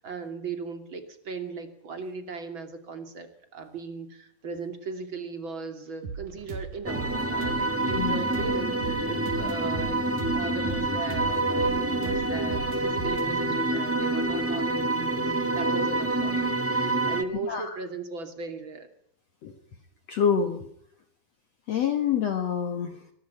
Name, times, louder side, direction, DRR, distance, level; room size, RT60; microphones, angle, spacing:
voice 1, 0.0-7.0 7.3-10.0 10.3-18.9, right 4 dB, 35° right, 8 dB, 3.2 m, -37 dB
sound 1, 6.0-15.7, right 5 dB, 70° right, 4.6 m, -39 dB
sound 2, 6.8-17.2, right 2 dB, 10° right, 0.6 m, -27 dB
voice 2, 20.1-20.7 21.7-23.1, left 7 dB, 55° left, 7 dB, 2.5 m, -27 dB
24.0 x 20.0 x 5.8 m, 0.68 s
omnidirectional pair, 4.0 m